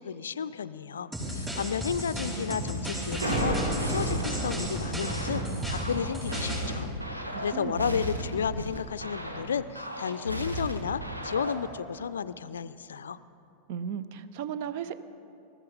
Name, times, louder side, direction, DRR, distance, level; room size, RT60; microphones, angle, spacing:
voice 1, 0.0-13.2, left 7 dB, 70° left, 15 dB, 0.4 m, -33 dB
sound 1, 1.1-6.7, equal, 15° right, 4.6 m, -34 dB
sound 2, 3.1-7.6, right 1 dB, 70° right, 2.0 m, -33 dB
sound 3, 3.8-11.7, equal, 85° right, 1.2 m, -36 dB
voice 2, 7.2-8.1 13.7-15.0, right 8 dB, 50° right, 13 dB, 0.6 m, -36 dB
20.5 x 14.0 x 4.0 m, 2.7 s
figure-of-eight pair, 90°, 0 cm